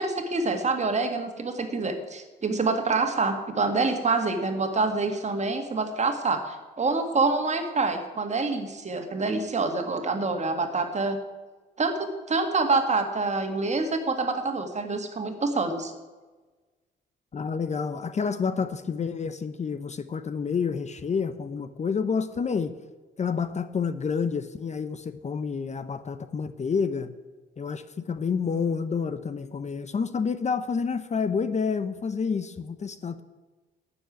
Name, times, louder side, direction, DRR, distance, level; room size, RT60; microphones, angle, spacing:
voice 1, 0.0-11.2 11.8-15.9, right 3 dB, 35° right, 6 dB, 2.1 m, -26 dB
voice 2, 17.3-22.7 23.2-27.1 27.6-33.2, left 5 dB, 35° left, 12 dB, 0.8 m, -29 dB
12.5 x 7.0 x 9.3 m, 1.3 s
cardioid pair, 90°, 20 cm